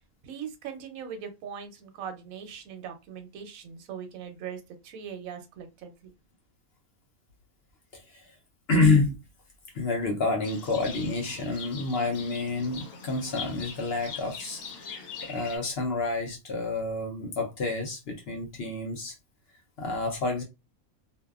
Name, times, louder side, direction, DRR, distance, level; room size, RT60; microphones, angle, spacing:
voice 1, 0.2-6.1, right 7 dB, 85° right, 7 dB, 1.0 m, -40 dB
voice 2, 7.9-8.3 8.7-9.2 9.7-19.1 19.8-20.4, left 3 dB, 60° left, 2 dB, 0.7 m, -28 dB
Livestock farm animals working animals, 10.4-15.6, left 5 dB, 75° left, 1.0 m, -42 dB
2.6 x 2.1 x 2.3 m, 0.24 s
omnidirectional pair, 1.4 m